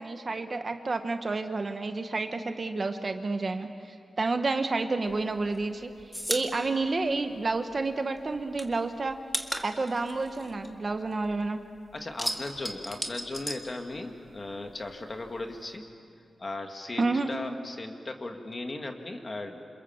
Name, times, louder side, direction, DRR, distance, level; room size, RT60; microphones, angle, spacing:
voice 1, 0.0-5.9 6.3-9.2 9.6-11.6 17.0-17.3, right 3 dB, 35° right, 7 dB, 1.1 m, -30 dB
sound 1, 5.1-7.9 8.2-11.5 11.8-14.4 14.6-15.8, equal, ahead, 1.8 m, -36 dB
voice 2, 11.9-15.8 16.4-19.6, left 2 dB, 30° left, 4 dB, 2.0 m, -37 dB
28.0 x 27.5 x 7.3 m, 2.4 s
wide cardioid pair, 155°, 0 cm